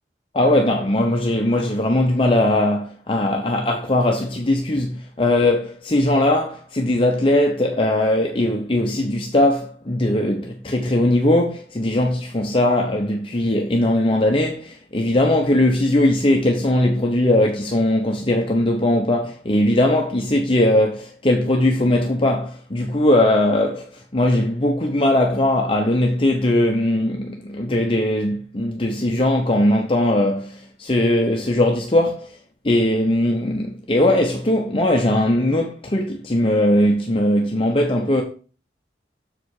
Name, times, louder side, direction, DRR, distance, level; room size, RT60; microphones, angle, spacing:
voice 1, 0.3-32.3 32.6-38.2, left 1 dB, 30° left, 0.8 m, -19 dB
6.9 x 4.9 x 4.7 m
head